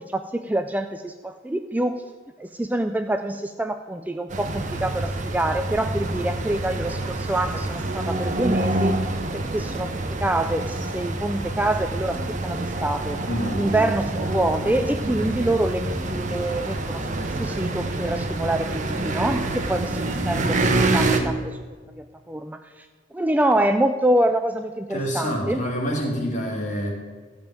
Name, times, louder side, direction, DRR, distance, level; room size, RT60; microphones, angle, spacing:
voice 1, 0.0-2.0 2.4-9.0 9.3-13.2 13.6-21.6 22.0-22.9 23.1-25.6, right 1 dB, 10° right, 7 dB, 0.3 m, -26 dB
sound 1, 4.3-21.2, right 2 dB, 35° right, 1.0 m, -27 dB
voice 2, 13.2-13.7 24.9-26.9, equal, 35° left, -1 dB, 2.5 m, -27 dB
14.0 x 5.3 x 8.8 m, 1.4 s
head